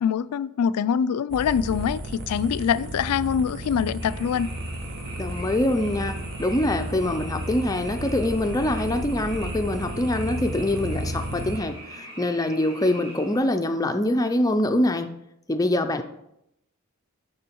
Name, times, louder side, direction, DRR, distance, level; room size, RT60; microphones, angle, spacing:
voice 1, 0.0-4.5, left 7 dB, 90° left, 0.3 m, -24 dB
sound 1, 1.3-11.6, right 1 dB, 45° right, 0.8 m, -33 dB
Frog, 4.0-13.4, right 1 dB, 25° right, 2.7 m, -43 dB
voice 2, 5.2-15.1 15.5-16.0, left 1 dB, 15° left, 0.4 m, -24 dB
10.5 x 3.9 x 4.5 m
head